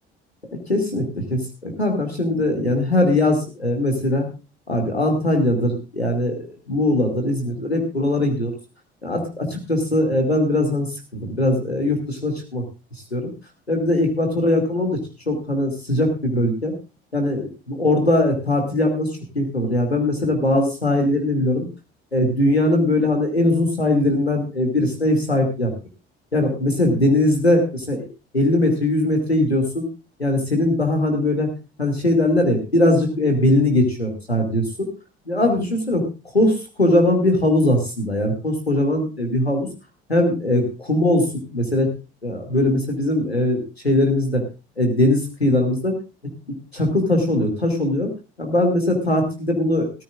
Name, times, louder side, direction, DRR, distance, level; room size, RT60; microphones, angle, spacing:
voice 1, 0.7-4.3 4.7-8.5 9.0-12.6 13.1-13.3 13.7-15.0 15.3-16.7 17.1-19.1 19.3-21.7 22.1-25.7 26.3-28.1 28.3-29.9 30.2-31.5 31.8-34.9 35.3-36.0 36.3-39.7 40.1-41.9 42.2-44.4 44.8-45.9 46.7-48.1 48.4-49.9, left 1 dB, 90° left, 4 dB, 2.4 m, -20 dB
17.5 x 14.0 x 2.5 m, 0.30 s
figure-of-eight pair, 55°, 31 cm